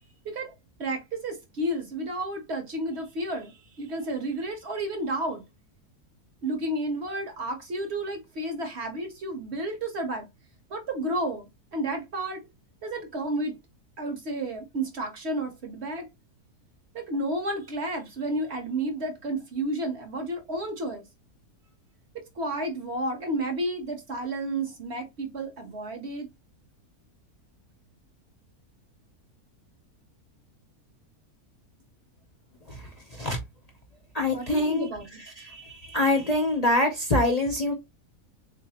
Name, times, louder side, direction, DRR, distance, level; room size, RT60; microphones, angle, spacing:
voice 1, 0.8-5.4 6.4-10.3 10.7-12.4 12.8-13.6 14.0-16.1 16.9-21.1 22.4-26.3 34.3-35.2, right 1 dB, 50° right, 0.9 m, -31 dB
voice 2, 34.1-34.9 35.4-37.7, left 1 dB, 45° left, 0.5 m, -25 dB
3.8 x 2.7 x 2.8 m
omnidirectional pair, 1.7 m